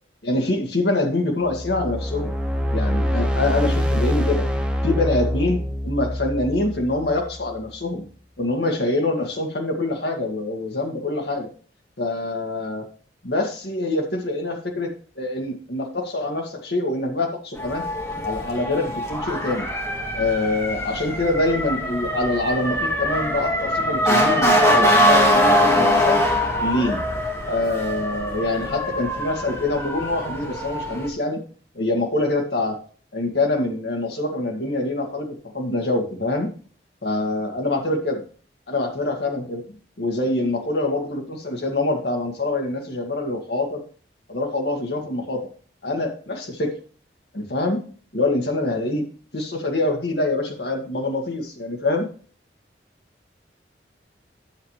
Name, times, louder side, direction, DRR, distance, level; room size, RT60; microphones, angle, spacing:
voice 1, 0.2-2.3 2.7-4.5 4.8-8.1 8.4-11.5 12.0-12.9 13.2-17.8 18.2-19.7 20.1-26.2 26.6-27.0 27.5-31.4 31.8-32.8 33.1-36.5 37.0-38.2 38.7-39.6 40.0-43.8 44.3-45.4 45.8-46.8 47.3-47.8 48.1-49.1 49.3-52.1, left 2 dB, 70° left, 2 dB, 1.8 m, -25 dB
sound 1, 1.4-7.6, equal, 5° right, 0.9 m, -25 dB
Motor vehicle (road) / Siren, 17.6-31.1, equal, 15° left, 1.9 m, -22 dB
10.0 x 7.2 x 3.2 m, 0.42 s
head